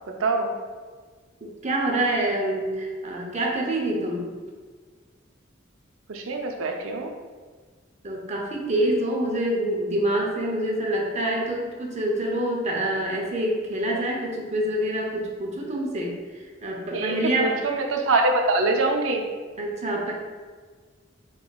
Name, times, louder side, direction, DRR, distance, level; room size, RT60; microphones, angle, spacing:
voice 1, 0.2-0.5 6.1-7.1 16.9-19.2, right 3 dB, 85° right, 3 dB, 0.5 m, -24 dB
voice 2, 1.4-4.3 8.0-16.2 16.6-17.6 19.6-20.1, right 1 dB, 35° right, -1 dB, 0.6 m, -26 dB
4.2 x 3.7 x 2.3 m, 1.5 s
head